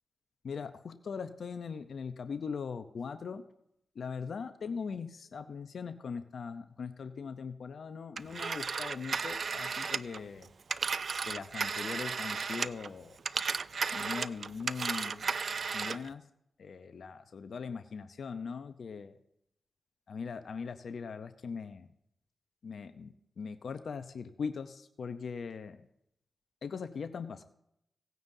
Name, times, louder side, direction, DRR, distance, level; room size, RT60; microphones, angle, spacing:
voice 1, 0.4-3.4 3.9-10.5 11.3-13.2 13.9-15.3 15.7-16.3 16.6-19.2 20.1-21.9 22.6-25.8 26.6-27.4, left 5 dB, 70° left, 9 dB, 0.7 m, -40 dB
Telephone, 8.2-12.9 13.2-16.1, right 5 dB, 65° right, 0.3 m, -34 dB
18.0 x 9.3 x 2.7 m, 0.75 s
cardioid pair, 45°, 0 cm